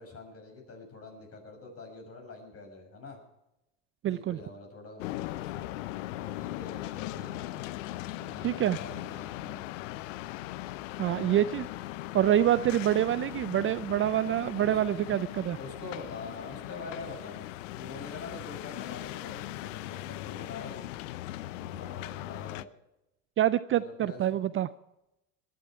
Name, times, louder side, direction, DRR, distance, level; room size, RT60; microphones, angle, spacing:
voice 1, 0.0-3.2 4.0-5.8 6.1-7.6 8.1-9.6 11.0-11.3 14.4-15.0 15.6-20.9 21.5-22.7 23.7-24.4, left 3 dB, 40° left, 3 dB, 6.4 m, -45 dB
voice 2, 4.0-4.4 8.4-8.8 11.0-11.7 12.1-15.6 23.4-24.7, right 11 dB, 35° right, 15 dB, 0.5 m, -26 dB
sound 1, 5.0-22.6, left 16 dB, 75° left, 0.7 m, -39 dB
20.0 x 11.5 x 4.6 m, 0.89 s
hypercardioid pair, 85°, 38 cm